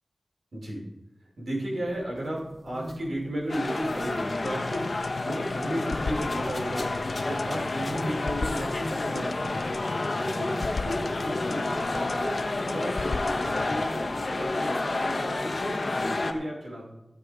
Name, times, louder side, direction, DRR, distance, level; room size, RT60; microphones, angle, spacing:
voice 1, 0.5-0.8 1.4-4.9 5.2-6.9 7.2-9.7 10.2-16.9, right 1 dB, 75° right, -3 dB, 4.7 m, -34 dB
sound 1, 1.9-14.7, equal, ahead, 3.5 m, -47 dB
sound 2, 3.5-16.3, left 2 dB, 50° left, 1.1 m, -30 dB
sound 3, 4.5-13.9, left 4 dB, 75° left, 0.4 m, -37 dB
15.5 x 6.9 x 5.1 m, 0.94 s
wide cardioid pair, 90°, 0 cm